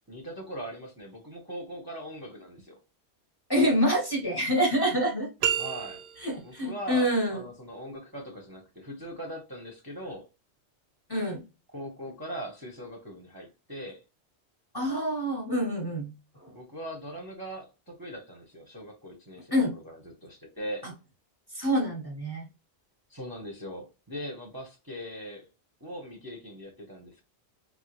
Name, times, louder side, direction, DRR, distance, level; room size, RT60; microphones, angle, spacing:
voice 1, 0.1-2.8 5.6-6.0 6.4-10.2 11.7-14.0 16.5-20.8 23.1-25.5 25.8-27.2, equal, 25° right, 0.6 m, -40 dB
voice 2, 3.5-5.3 6.2-7.4 11.1-11.4 14.7-16.1 19.5-19.8 20.8-20.9 21.5-22.5, equal, 25° left, 0.7 m, -26 dB
sound 1, 5.4-6.5, right 9 dB, 60° right, 0.7 m, -30 dB
3.5 x 2.2 x 2.8 m
omnidirectional pair, 1.1 m